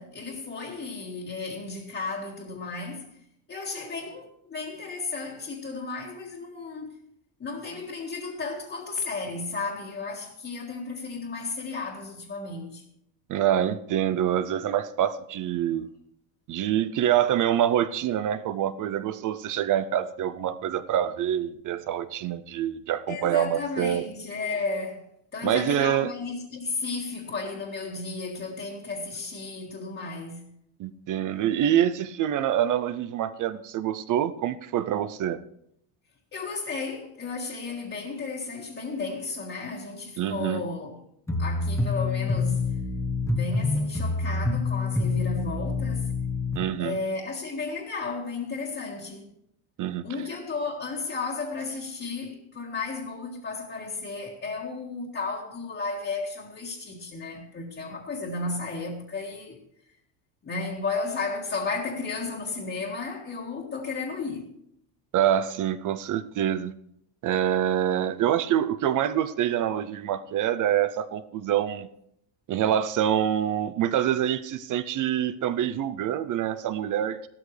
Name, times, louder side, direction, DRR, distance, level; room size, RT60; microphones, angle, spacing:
voice 1, 0.0-3.1 3.5-7.0 7.4-12.8 23.1-25.1 25.3-30.5 36.3-41.0 41.4-42.8 43.3-46.1 46.8-49.3 50.0-59.6 60.4-64.4, left 4 dB, 25° left, 1.8 m, -33 dB
voice 2, 13.3-15.9 16.5-24.1 25.4-26.1 30.8-35.4 40.2-40.6 46.5-47.0 49.8-50.0 65.1-66.7 67.2-71.9 72.5-77.3, right 10 dB, 40° right, 0.5 m, -26 dB
sound 1, 41.3-46.6, left 3 dB, 5° left, 1.0 m, -27 dB
15.0 x 13.0 x 3.2 m
cardioid pair, 160°, 49 cm